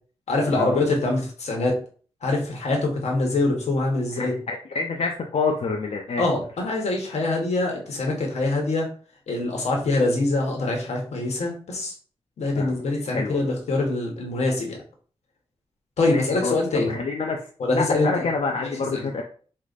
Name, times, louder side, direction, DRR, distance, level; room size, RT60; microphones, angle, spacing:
voice 1, 0.3-1.7 2.2-4.3 6.2-8.9 9.3-11.9 12.4-14.8 16.0-16.9 17.6-18.2 18.6-19.1, left 2 dB, 85° left, 0 dB, 1.2 m, -24 dB
voice 2, 4.1-6.2 12.6-12.8 13.1-13.4 16.1-16.6 16.9-19.2, left 4 dB, 70° left, 1 dB, 0.6 m, -27 dB
4.8 x 2.1 x 4.0 m, 0.42 s
cardioid pair, 75°, 11 cm